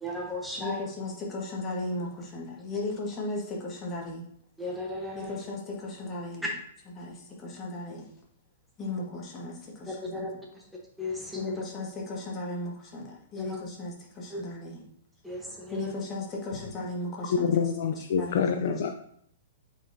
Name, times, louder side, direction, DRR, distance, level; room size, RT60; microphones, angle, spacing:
voice 1, 0.0-0.8 4.6-5.4 6.4-6.5 9.9-10.6 11.0-11.5 13.4-13.6 14.3-14.4 15.2-16.0, left 1 dB, 5° right, -1 dB, 1.1 m, -35 dB
voice 2, 0.6-4.3 5.1-6.5 7.0-8.1 8.8-10.3 11.3-14.9 15.7-17.6 17.9-18.9, left 2 dB, 25° left, -1 dB, 1.8 m, -36 dB
voice 3, 17.3-18.9, left 7 dB, 55° left, 5 dB, 0.5 m, -26 dB
8.5 x 4.5 x 2.8 m, 0.67 s
figure-of-eight pair, 110°, 0 cm